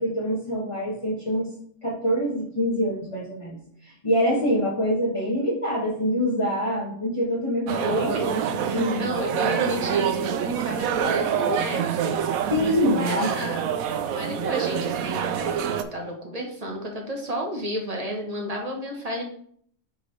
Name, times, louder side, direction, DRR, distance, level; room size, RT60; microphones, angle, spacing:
voice 1, 0.0-1.5 1.8-3.6 3.8-9.0 12.5-13.6, equal, 25° left, -5 dB, 1.4 m, -25 dB
voice 2, 7.7-8.3 8.6-12.2 12.8-13.7 14.1-19.2, equal, 30° right, 0 dB, 1.3 m, -32 dB
sound 1, 7.7-15.8, right 8 dB, 85° right, 1.1 m, -26 dB
9.6 x 3.8 x 3.3 m, 0.62 s
omnidirectional pair, 1.5 m